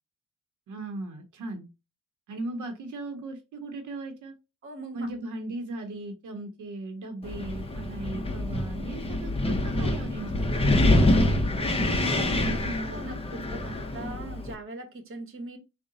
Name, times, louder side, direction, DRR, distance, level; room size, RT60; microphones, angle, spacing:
voice 1, 0.7-1.7 2.3-4.4 4.9-11.3 11.7-13.1, right 2 dB, 80° right, 0.7 m, -38 dB
voice 2, 4.6-5.1 9.6-10.1 11.5-11.8 12.8-15.6, right 2 dB, 45° right, 0.9 m, -41 dB
Wind, 7.2-14.5, left 1 dB, 20° left, 0.5 m, -26 dB
3.7 x 2.1 x 3.7 m
cardioid pair, 125°, 31 cm